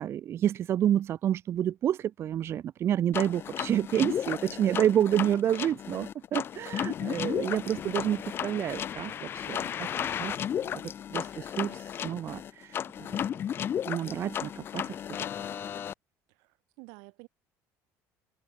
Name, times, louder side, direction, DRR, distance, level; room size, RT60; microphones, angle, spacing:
voice 1, 0.0-9.9 10.1-10.8 11.1-12.8 13.1-13.2 13.9-14.9, right 10 dB, 40° right, 0.8 m, -29 dB
sound 1, 3.1-15.9, left 9 dB, 35° left, 0.6 m, -34 dB
sound 2, 4.2-13.6, left 19 dB, 65° left, 4.0 m, -62 dB
voice 2, 16.4-17.3, right 34 dB, 85° right, 4.4 m, -50 dB
cardioid pair, 140°, 7 cm